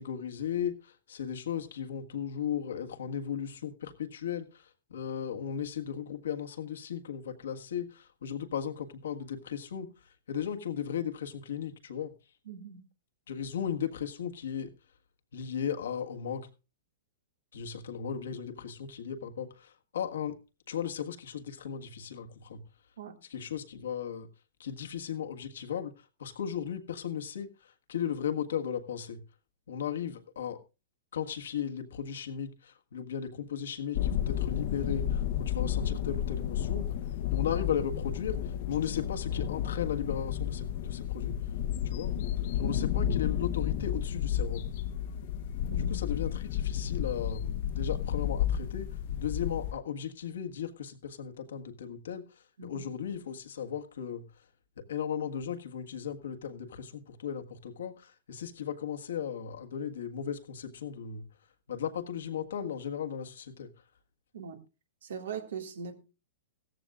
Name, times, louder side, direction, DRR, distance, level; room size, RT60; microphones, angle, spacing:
voice 1, 0.0-12.1 13.3-14.7 15.3-16.5 17.5-20.4 20.7-22.6 23.2-24.3 24.6-29.2 29.7-30.6 31.1-36.9 37.3-41.4 41.8-42.2 42.6-44.6 45.8-54.2 54.8-61.3 61.7-63.7, left 8 dB, 85° left, 1.6 m, -36 dB
voice 2, 12.5-12.8 23.0-23.2 42.7-42.8 45.7-46.0 52.6-52.9 64.3-64.6 65.0-66.0, right 6 dB, 80° right, 2.1 m, -41 dB
sound 1, 33.9-49.7, left 10 dB, 55° left, 0.9 m, -32 dB
16.0 x 14.5 x 2.4 m
hypercardioid pair, 150°, 0 cm